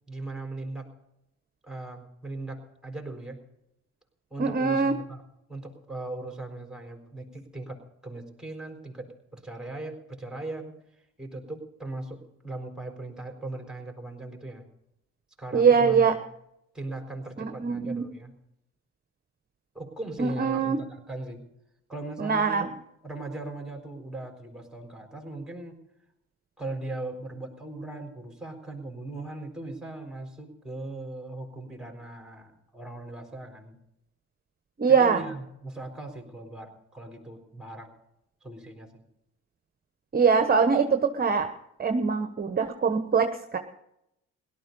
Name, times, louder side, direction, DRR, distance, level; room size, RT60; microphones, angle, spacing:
voice 1, 0.1-0.9 1.6-3.4 4.3-5.2 5.5-10.7 11.2-14.6 15.4-16.2 16.7-18.3 19.7-21.4 21.9-22.7 23.0-25.8 26.6-33.8 34.9-37.9 38.4-39.0, right 2 dB, ahead, 3 dB, 4.3 m, -39 dB
voice 2, 4.4-4.9 15.5-16.1 17.4-18.1 20.2-20.8 22.2-22.7 34.8-35.2 40.1-41.5 41.8-43.6, right 5 dB, 30° right, 7 dB, 1.1 m, -23 dB
17.5 x 12.5 x 5.4 m, 0.81 s
cardioid pair, 90°, 30 cm